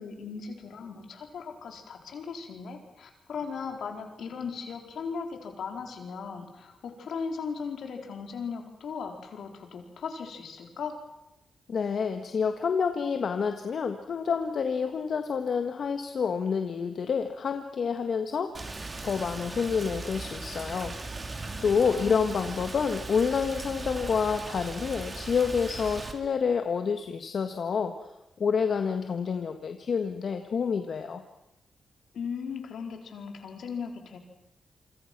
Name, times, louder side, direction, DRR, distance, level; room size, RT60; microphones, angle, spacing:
voice 1, 0.0-11.0 21.9-22.3 32.1-34.2, left 5 dB, 80° left, 4 dB, 4.2 m, -37 dB
voice 2, 11.7-18.5 19.0-21.0 21.2-28.0 28.4-31.2, left 6 dB, 65° left, 6 dB, 1.6 m, -28 dB
Rain, 18.5-26.1, right 3 dB, 35° right, 3.4 m, -38 dB
27.5 x 25.0 x 6.1 m, 0.91 s
cardioid pair, 80°, 0 cm